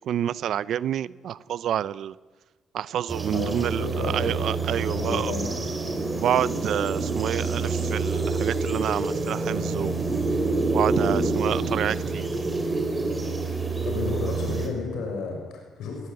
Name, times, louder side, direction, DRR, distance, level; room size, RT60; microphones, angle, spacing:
voice 1, 0.0-2.1 2.7-5.3 6.1-10.0 10.7-12.3, right 10 dB, 70° right, 0.7 m, -28 dB
sound 1, 3.1-14.7, right 3 dB, 20° right, 5.4 m, -27 dB
voice 2, 3.3-4.3 4.9-5.5 11.6-11.7 13.8-16.1, left 4 dB, 80° left, 6.7 m, -32 dB
20.0 x 18.5 x 9.6 m
cardioid pair, 90°, 0 cm